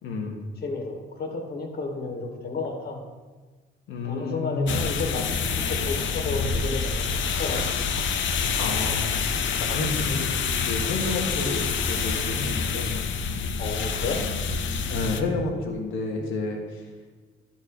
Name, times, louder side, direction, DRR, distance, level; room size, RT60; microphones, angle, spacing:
voice 1, 0.0-0.4 3.9-4.9 8.6-9.3 9.7-13.0 14.9-16.6, left 3 dB, 90° left, 1 dB, 1.8 m, -30 dB
voice 2, 0.6-3.0 4.0-7.1 7.4-7.6 8.0-8.1 13.6-14.2, left 3 dB, 55° left, 3 dB, 1.9 m, -32 dB
sound 1, 4.7-15.2, left 5 dB, 70° left, 0.8 m, -27 dB
12.0 x 4.7 x 6.0 m, 1.4 s
cardioid pair, 90°, 20 cm